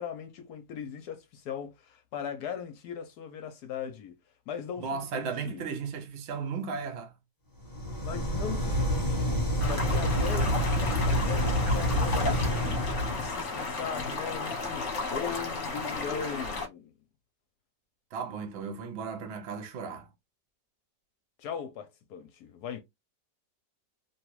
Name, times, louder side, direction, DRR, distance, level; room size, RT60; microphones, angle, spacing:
voice 1, 0.0-4.1 4.5-5.6 8.0-16.9 21.4-22.8, left 7 dB, 70° left, 1.0 m, -39 dB
voice 2, 4.8-7.2 18.1-20.1, right 5 dB, 60° right, 0.7 m, -35 dB
sound 1, 7.6-13.4, equal, 15° left, 0.7 m, -28 dB
sound 2, 9.6-16.7, left 3 dB, 50° left, 1.1 m, -34 dB
3.1 x 2.3 x 3.0 m
omnidirectional pair, 1.9 m